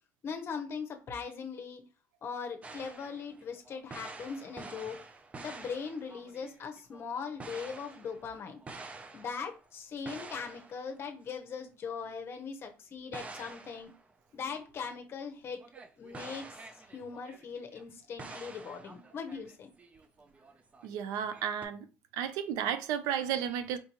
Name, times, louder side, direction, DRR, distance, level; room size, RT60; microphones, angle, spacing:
voice 1, 0.2-1.8 2.2-5.0 5.3-8.6 9.1-13.9 14.3-15.6 16.0-16.5 16.7-19.7, left 5 dB, 45° left, 0.8 m, -40 dB
sound 1, 2.6-9.7 10.1-11.0 11.3-11.4 12.1-12.2 13.1-14.6 15.6-17.9 18.2-20.9 21.1-21.6, right 3 dB, 25° right, 0.5 m, -48 dB
voice 2, 20.8-21.9 22.1-23.8, right 9 dB, 90° right, 0.5 m, -33 dB
4.5 x 2.6 x 2.9 m
cardioid pair, 120°, 6 cm